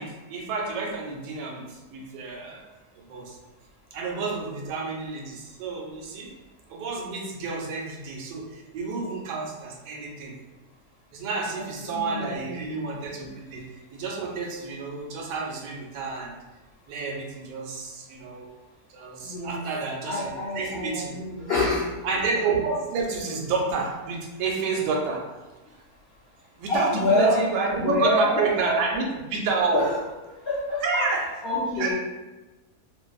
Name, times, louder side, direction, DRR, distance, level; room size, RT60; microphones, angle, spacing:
voice 1, 0.0-2.6 3.0-3.4 3.9-6.3 6.7-10.4 11.1-16.3 16.9-18.5 18.9-21.1 22.0-25.2 26.6-29.8 30.8-31.2 31.8-31.9, right 4 dB, 90° right, 0 dB, 1.2 m, -30 dB
voice 2, 11.8-12.5 19.3-19.6 20.0-21.9 26.7-27.4 27.7-28.4 28.7-28.8 29.7-29.9 30.5-31.1 31.4-31.9, left 1 dB, 70° left, -9 dB, 0.5 m, -26 dB
2.5 x 2.4 x 2.3 m, 1.1 s
omnidirectional pair, 1.7 m